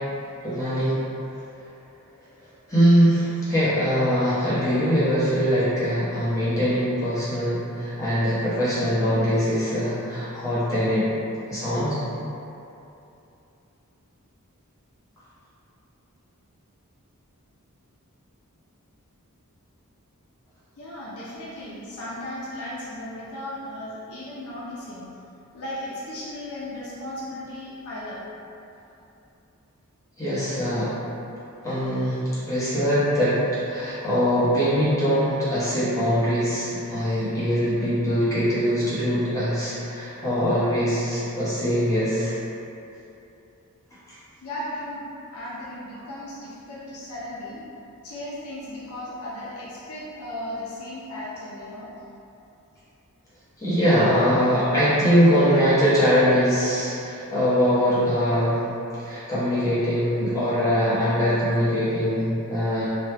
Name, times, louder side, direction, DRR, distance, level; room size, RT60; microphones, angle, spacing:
voice 1, 0.4-1.0 2.7-11.0 11.5-12.0 30.2-30.9 31.6-32.2 32.5-33.4 33.7-42.3 53.6-58.6 59.0-62.8, equal, 15° left, -12 dB, 0.9 m, -22 dB
voice 2, 20.8-25.1 25.5-28.2 44.4-45.0 45.3-47.6 48.0-51.9, left 1 dB, 70° left, -8 dB, 0.6 m, -36 dB
3.0 x 2.3 x 3.3 m, 2.8 s
head